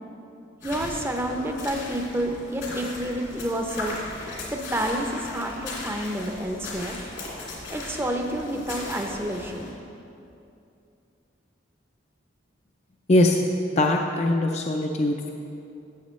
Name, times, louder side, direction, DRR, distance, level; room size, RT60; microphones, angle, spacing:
sound 1, 0.6-9.7, left 2 dB, 80° left, 2.5 m, -37 dB
voice 1, 0.6-4.0 4.5-7.0 7.7-9.7, right 1 dB, 10° right, 3 dB, 0.6 m, -29 dB
voice 2, 13.8-15.3, left 1 dB, 35° left, 2 dB, 0.4 m, -21 dB
14.0 x 7.8 x 3.1 m, 2.6 s
head